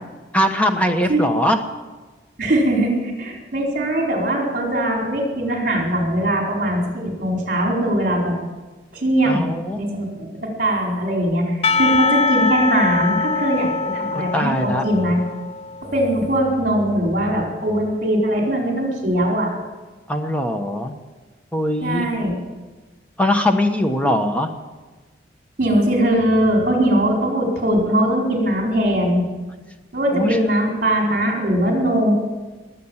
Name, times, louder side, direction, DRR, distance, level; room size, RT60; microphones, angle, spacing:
voice 1, 0.3-1.6 9.3-9.8 14.1-14.8 20.1-20.9 21.5-22.1 23.2-24.5 30.1-30.4, left 1 dB, 5° left, 5 dB, 1.1 m, -21 dB
voice 2, 2.4-8.3 8.9-9.4 9.7-15.2 15.9-19.5 21.8-22.3 24.0-24.1 25.6-29.2 29.9-32.1, right 1 dB, 45° right, -1 dB, 4.6 m, -20 dB
Percussion / Church bell, 11.6-16.0, left 4 dB, 30° left, 0.4 m, -22 dB
20.5 x 8.5 x 7.2 m, 1.3 s
head